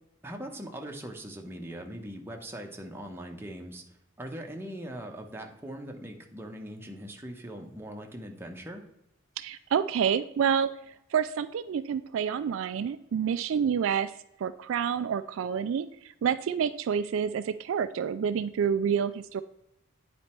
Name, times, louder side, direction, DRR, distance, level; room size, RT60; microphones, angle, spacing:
voice 1, 0.2-3.8 4.2-8.8, right 1 dB, 10° right, 2 dB, 0.9 m, -41 dB
voice 2, 9.4-14.1 14.4-19.4, right 7 dB, 70° right, 12 dB, 0.3 m, -28 dB
9.3 x 4.2 x 4.4 m, 0.83 s
head